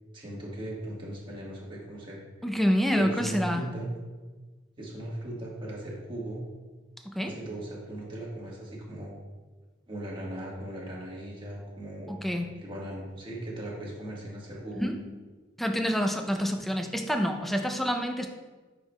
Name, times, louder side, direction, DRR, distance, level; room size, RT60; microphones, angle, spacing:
voice 1, 0.1-2.5 2.9-3.9 4.8-6.4 7.2-9.2 9.9-12.1 12.6-14.9, right 1 dB, 25° right, -4 dB, 1.3 m, -38 dB
voice 2, 2.4-3.6 7.0-7.4 12.1-12.6 14.8-15.0 15.6-18.3, equal, ahead, 4 dB, 0.4 m, -27 dB
9.7 x 4.5 x 2.2 m, 1.3 s
head